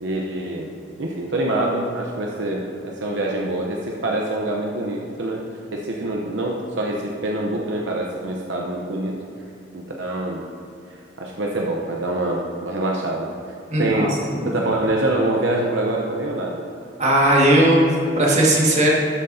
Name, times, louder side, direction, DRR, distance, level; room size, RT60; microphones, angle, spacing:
voice 1, 0.0-5.4 5.7-9.1 9.7-10.4 11.2-13.3 13.8-14.2 14.5-16.6, right 1 dB, 70° right, -1 dB, 0.8 m, -25 dB
voice 2, 13.7-14.5 17.0-18.9, right 1 dB, 40° right, -4 dB, 1.9 m, -17 dB
12.5 x 7.7 x 2.7 m, 2.7 s
head